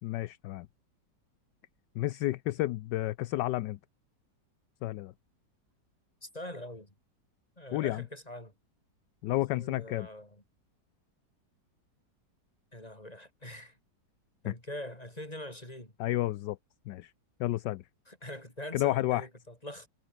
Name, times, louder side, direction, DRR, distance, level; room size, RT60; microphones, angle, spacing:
voice 1, 0.0-0.7 1.9-3.8 4.8-5.1 7.7-8.0 9.2-10.1 14.5-14.6 16.0-16.6 16.9-17.1 17.4-17.9 18.7-19.3, left 16 dB, 75° left, 1.2 m, -31 dB
voice 2, 6.2-6.9 7.6-8.5 9.5-10.4 12.7-13.8 14.4-15.9 18.1-19.9, left 1 dB, 20° left, 7.6 m, -43 dB
omnidirectional pair, 2.0 m